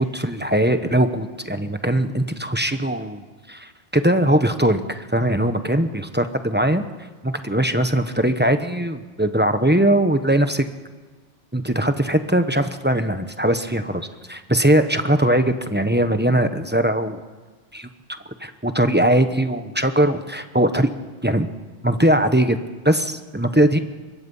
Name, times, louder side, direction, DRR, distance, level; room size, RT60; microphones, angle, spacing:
voice 1, 0.0-6.8 7.2-10.6 11.5-17.2 17.7-17.9 18.4-20.9 21.2-21.5 21.8-22.6 22.8-23.8, right 1 dB, 10° right, 8 dB, 1.1 m, -20 dB
24.5 x 22.0 x 5.6 m, 1.3 s
omnidirectional pair, 1.2 m